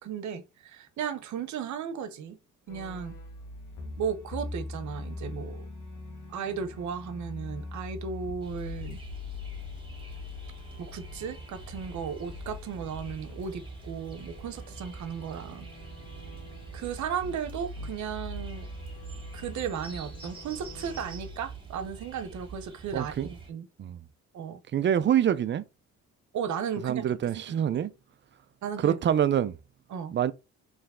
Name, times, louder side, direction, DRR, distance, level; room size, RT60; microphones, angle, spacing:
voice 1, 0.0-2.4 2.7-3.1 4.0-5.7 6.3-9.0 10.8-15.7 16.7-18.7 19.3-23.7 24.3-24.6 26.3-27.0 27.3-27.8 28.6-29.0 29.9-30.1, right 7 dB, 70° right, 0.9 m, -35 dB
sound 1, 2.7-21.4, left 3 dB, 85° left, 1.4 m, -43 dB
sound 2, 8.4-23.5, right 5 dB, 15° right, 2.1 m, -45 dB
voice 2, 22.9-23.3 23.8-24.0 24.7-25.6 26.8-27.9 28.8-29.5 30.1-30.3, right 9 dB, 40° right, 0.4 m, -25 dB
4.4 x 3.2 x 3.7 m
cardioid pair, 90°, 30 cm